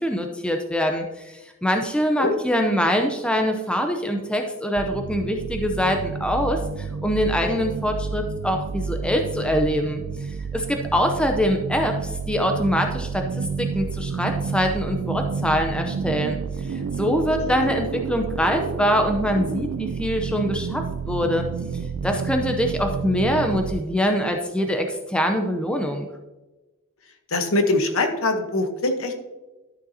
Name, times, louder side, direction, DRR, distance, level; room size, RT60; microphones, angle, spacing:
voice 1, 0.0-10.0 10.5-16.4 16.7-21.4 22.0-26.1, equal, 5° left, 4 dB, 0.6 m, -24 dB
sound 1, 4.8-23.8, right 5 dB, 70° right, 0.4 m, -30 dB
voice 2, 17.4-17.7 27.3-29.2, left 2 dB, 65° left, 6 dB, 1.1 m, -23 dB
12.0 x 6.8 x 2.8 m, 1.1 s
head